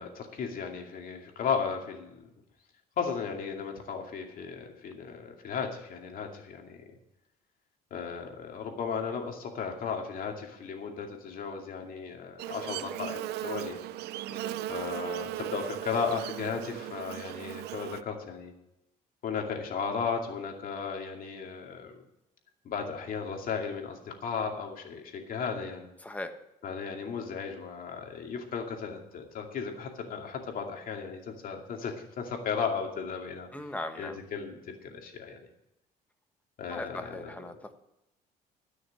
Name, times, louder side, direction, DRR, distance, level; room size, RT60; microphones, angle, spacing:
voice 1, 0.0-2.3 3.0-6.8 7.9-13.8 14.7-18.5 19.2-22.0 22.6-25.9 26.6-33.5 34.0-35.5 36.6-37.2, left 6 dB, 55° left, 2 dB, 2.4 m, -35 dB
Buzz, 12.4-18.0, right 14 dB, 75° right, 0.5 m, -37 dB
voice 2, 14.3-14.6 26.0-26.4 33.5-34.2 36.7-37.7, left 1 dB, 10° left, 7 dB, 1.3 m, -39 dB
13.0 x 6.4 x 8.2 m, 0.87 s
cardioid pair, 110°, 17 cm